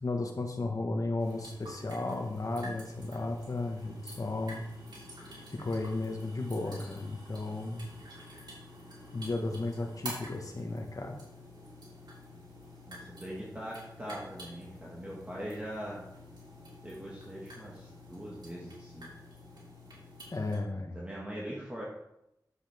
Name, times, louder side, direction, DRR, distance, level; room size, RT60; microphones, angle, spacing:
voice 1, 0.0-4.6 5.5-7.9 9.1-11.2 20.3-21.0, left 2 dB, 50° left, 3 dB, 1.5 m, -34 dB
sound 1, 1.2-20.6, equal, 80° right, 3.1 m, -48 dB
voice 2, 12.9-16.0 16.8-19.1 20.9-21.8, equal, 15° right, -5 dB, 1.9 m, -41 dB
10.0 x 7.3 x 3.6 m, 0.84 s
wide cardioid pair, 80°, 7 cm